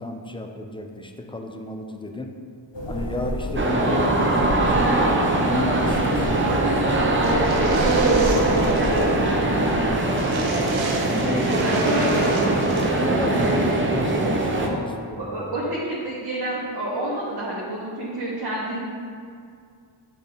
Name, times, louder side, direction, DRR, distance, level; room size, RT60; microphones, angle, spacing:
voice 1, 0.0-2.3 2.9-9.2 11.1-12.0 12.7-13.6 13.9-15.5, left 2 dB, 10° left, 4 dB, 0.5 m, -33 dB
sound 1, 2.7-9.9, left 1 dB, 65° left, 0.9 m, -30 dB
sound 2, 3.6-14.7, right 2 dB, 25° right, 0.7 m, -21 dB
sound 3, 7.2-9.2 9.4-9.5 9.8-9.9 10.1-12.9, right 4 dB, 75° right, 0.8 m, -35 dB
voice 2, 9.5-9.8 11.6-12.3 13.3-13.6 14.7-14.8 15.2-18.8, right 1 dB, 50° right, -8 dB, 1.3 m, -29 dB
8.9 x 3.4 x 3.9 m, 2.3 s
wide cardioid pair, 70°, 48 cm